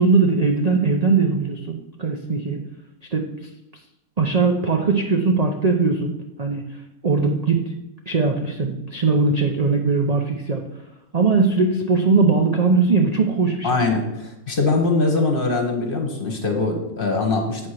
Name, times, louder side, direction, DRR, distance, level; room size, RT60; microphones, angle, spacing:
voice 1, 0.0-2.6 3.1-3.3 4.2-6.1 6.4-6.6 7.0-7.6 8.1-10.6 11.1-13.8, right 4 dB, 45° right, 2 dB, 0.5 m, -20 dB
voice 2, 13.6-17.7, left 3 dB, 40° left, 3 dB, 1.2 m, -22 dB
8.1 x 4.3 x 6.5 m, 0.93 s
omnidirectional pair, 1.6 m